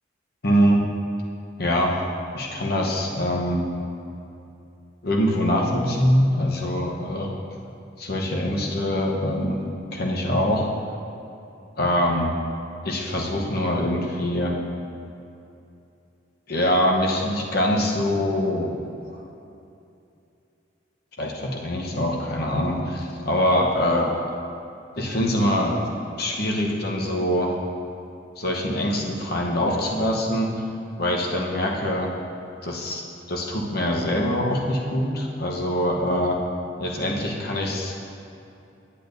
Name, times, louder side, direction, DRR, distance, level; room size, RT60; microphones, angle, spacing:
voice 1, 0.4-0.8 1.6-2.0 2.3-3.7 5.0-7.3 8.0-9.6 9.9-10.7 11.8-12.4 12.8-14.6 16.5-18.9 19.1-19.2 21.2-24.1 25.0-25.8 26.2-27.6 28.4-30.5 31.0-32.1 32.6-36.4 36.8-37.9, equal, 55° left, -1 dB, 1.0 m, -23 dB
10.0 x 8.6 x 2.7 m, 2.7 s
head